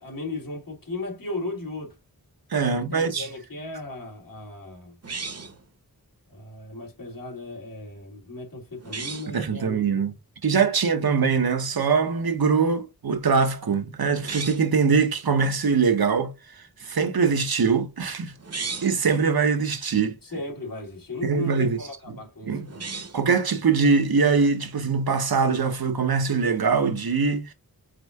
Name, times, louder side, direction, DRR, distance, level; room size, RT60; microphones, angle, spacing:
voice 1, 0.0-1.9 2.7-5.0 6.3-10.0 20.2-22.9, left 2 dB, 65° left, 1.5 m, -36 dB
voice 2, 2.5-3.3 9.3-10.1 10.4-16.3 16.8-18.3 18.8-20.1 21.2-21.8 22.1-22.2 22.4-22.7 23.1-27.5, right 5 dB, 80° right, 0.8 m, -22 dB
sound 1, 5.0-5.6 8.8-9.3 14.1-14.8 18.4-19.0 22.6-23.3, right 4 dB, 45° right, 0.8 m, -35 dB
4.9 x 3.5 x 2.3 m
wide cardioid pair, 55°, 36 cm